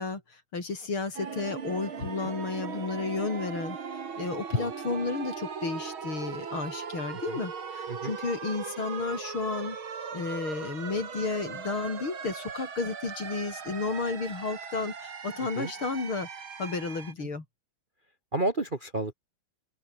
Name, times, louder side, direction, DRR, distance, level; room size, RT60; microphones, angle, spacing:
voice 1, 0.0-9.8 10.1-16.3 16.6-17.4, left 4 dB, 75° left, 5.4 m, -32 dB
sound 1, 1.1-17.1, right 6 dB, 70° right, 3.3 m, -39 dB
voice 2, 18.3-19.1, right 2 dB, 25° right, 1.7 m, -31 dB
open air
omnidirectional pair, 2.3 m